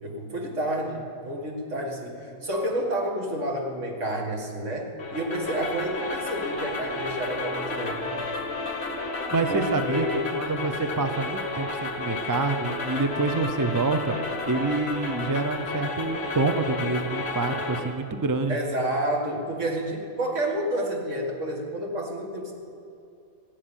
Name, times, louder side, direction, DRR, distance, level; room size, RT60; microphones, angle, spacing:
voice 1, 0.0-8.2 9.5-10.2 18.5-22.5, right 1 dB, 60° right, 0 dB, 2.3 m, -30 dB
sound 1, 5.0-17.8, left 3 dB, 50° left, 1.8 m, -32 dB
voice 2, 9.3-10.1 10.3-14.2 14.5-18.6, right 3 dB, 25° right, 8 dB, 0.4 m, -27 dB
15.5 x 7.7 x 8.9 m, 2.6 s
omnidirectional pair, 1.4 m